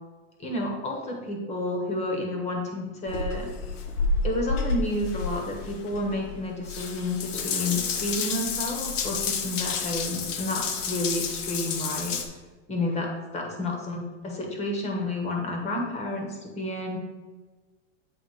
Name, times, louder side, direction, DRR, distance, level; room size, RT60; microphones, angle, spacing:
voice 1, 0.4-3.5 4.2-12.2 12.7-17.0, left 1 dB, 20° left, 1 dB, 1.2 m, -30 dB
Water tap faucet / Bathtub (filling or washing) / Drip, 3.1-12.2, left 4 dB, 90° left, 1.1 m, -30 dB
8.2 x 3.6 x 5.0 m, 1.3 s
supercardioid pair, 150°, 36 cm